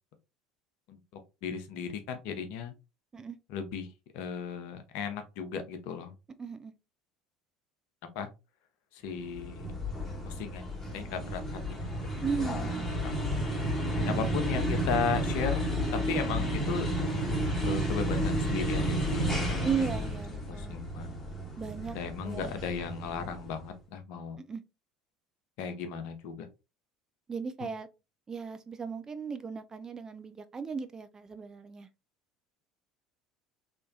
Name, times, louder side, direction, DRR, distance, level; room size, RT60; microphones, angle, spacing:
voice 1, 1.4-2.7 3.5-3.9 4.1-6.1 8.1-8.3 8.9-9.7 10.2-10.7 10.9-12.1 12.4-12.5 13.0-13.2 14.0-16.9 17.6-19.9 20.5-21.1 21.9-24.4 25.6-26.5, left 6 dB, 55° left, 0.7 m, -36 dB
voice 2, 6.4-6.7 12.2-12.9 14.0-14.3 19.6-20.8 21.6-22.0 22.2-22.5 24.4-24.6 27.3-27.9 28.3-31.9, right 6 dB, 25° right, 0.4 m, -36 dB
sound 1, 9.2-23.7, equal, 10° left, 1.2 m, -32 dB
3.3 x 3.0 x 2.5 m
figure-of-eight pair, 65°, 3 cm